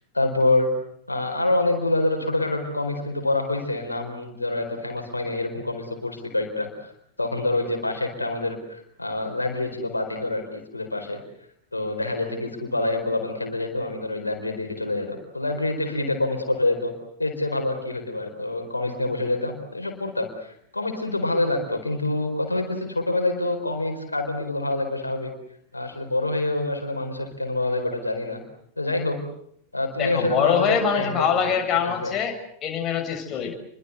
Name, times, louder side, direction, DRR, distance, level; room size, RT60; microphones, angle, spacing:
voice 1, 0.1-0.7 1.1-6.9 7.2-11.2 11.7-16.9 17.2-25.3 25.7-28.4 28.8-29.2 29.7-32.1, left 2 dB, 80° left, 4 dB, 4.5 m, -26 dB
voice 2, 30.0-32.4 32.6-33.5, left 7 dB, 30° left, 3 dB, 7.3 m, -23 dB
29.5 x 24.0 x 8.2 m, 0.70 s
figure-of-eight pair, 90°, 0 cm